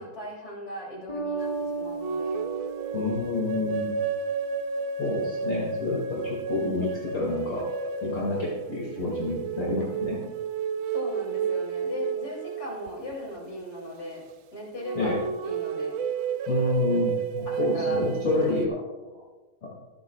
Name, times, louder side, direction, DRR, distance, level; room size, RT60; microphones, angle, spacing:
voice 1, 0.0-2.5 10.1-10.3 10.9-14.2 14.5-16.0 17.5-18.0 18.3-18.6, left 1 dB, 45° left, -2 dB, 3.6 m, -38 dB
Bass guitar, 1.1-4.6, right 3 dB, 20° left, 3.3 m, -36 dB
sound 1, 2.0-13.4 14.8-18.7, right 6 dB, 90° right, 1.6 m, -31 dB
voice 2, 2.9-4.0 5.0-7.7 8.0-10.2 15.0-15.2 16.5-19.2 19.6-19.8, left 3 dB, 65° left, -5 dB, 3.1 m, -29 dB
23.5 x 9.8 x 2.4 m, 1.2 s
omnidirectional pair, 2.2 m